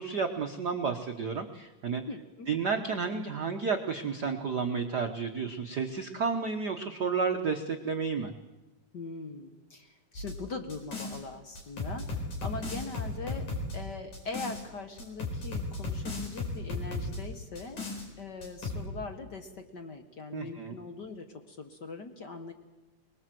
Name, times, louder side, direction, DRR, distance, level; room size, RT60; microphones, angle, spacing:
voice 1, 0.0-2.0 2.5-8.3 20.3-20.8, right 5 dB, 80° right, 5 dB, 0.9 m, -31 dB
voice 2, 2.1-2.5 8.9-13.5 13.7-17.9 18.2-22.5, left 3 dB, 50° left, 7 dB, 1.4 m, -41 dB
sound 1, 10.2-11.2 11.6-14.6 15.0-17.2 17.6-18.1 18.4-18.8, left 3 dB, 70° left, 5.5 m, -35 dB
23.5 x 20.5 x 7.7 m, 1.1 s
omnidirectional pair, 3.6 m